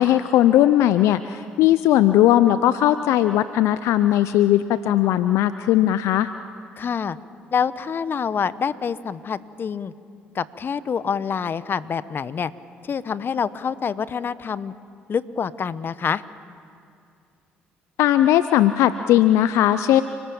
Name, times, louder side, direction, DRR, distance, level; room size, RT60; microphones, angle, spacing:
voice 1, 0.0-6.3 18.0-20.0, left 12 dB, 75° left, 13 dB, 0.6 m, -18 dB
voice 2, 6.8-7.2 7.5-9.9 10.3-12.5 12.8-14.7 15.1-16.2, left 6 dB, 45° left, 15 dB, 1.1 m, -26 dB
29.0 x 20.0 x 8.7 m, 2.4 s
hypercardioid pair, 55°, 5 cm